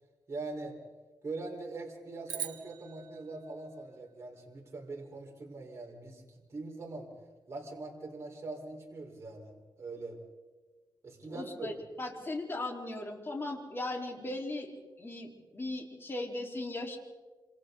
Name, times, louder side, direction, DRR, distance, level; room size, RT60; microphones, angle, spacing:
voice 1, 0.3-0.7 1.2-7.1 7.5-10.2 11.0-11.7, right 3 dB, 35° right, -1 dB, 4.6 m, -42 dB
sound 1, 2.3-4.7, right 9 dB, 90° right, 1.6 m, -44 dB
voice 2, 11.3-11.7 12.0-17.0, left 2 dB, 30° left, 0 dB, 4.4 m, -38 dB
27.5 x 27.0 x 4.0 m, 1.3 s
cardioid pair, 100°, 8 cm